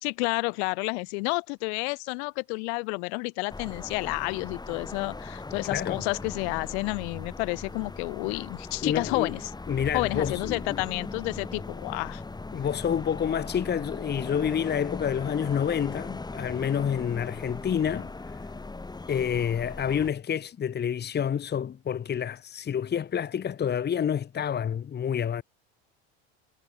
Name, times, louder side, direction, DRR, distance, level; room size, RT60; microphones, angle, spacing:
voice 1, 0.0-9.5 9.9-12.2, left 32 dB, 70° left, 4.3 m, -30 dB
sound 1, 3.5-20.1, left 3 dB, 10° left, 2.7 m, -39 dB
voice 2, 5.7-6.0 8.8-9.3 9.7-10.8 12.5-18.1 19.1-25.4, left 8 dB, 30° left, 1.8 m, -28 dB
hypercardioid pair, 90°, 34 cm